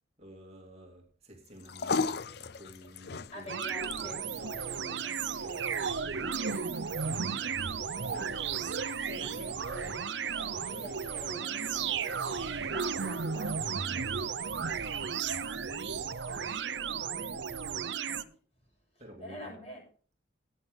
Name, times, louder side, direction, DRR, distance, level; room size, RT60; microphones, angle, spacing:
voice 1, 0.2-3.5 3.8-4.2 7.0-7.7 8.1-9.6 19.0-19.6, equal, 35° right, 2.4 m, -52 dB
sound 1, 1.4-17.9, left 4 dB, 60° left, 0.5 m, -43 dB
voice 2, 3.3-6.6 8.6-8.7 9.1-10.1 10.3-14.3 16.2-18.3 18.9-19.8, right 1 dB, 35° left, 7.9 m, -48 dB
sound 2, 3.5-18.2, right 6 dB, 75° right, 0.7 m, -34 dB
17.0 x 9.3 x 3.6 m
head